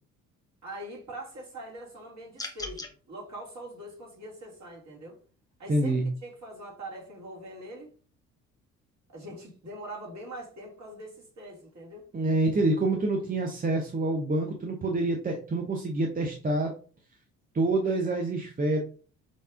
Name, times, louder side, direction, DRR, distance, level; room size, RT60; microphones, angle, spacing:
voice 1, 0.6-5.2 5.6-7.9 9.1-12.0, right 1 dB, 40° right, 2.2 m, -43 dB
sound 1, 2.4-2.9, left 2 dB, 10° left, 0.9 m, -37 dB
voice 2, 5.7-6.1 12.1-16.7 17.5-18.8, right 2 dB, 20° right, 0.8 m, -27 dB
5.3 x 3.3 x 2.5 m
figure-of-eight pair, 50°, 41 cm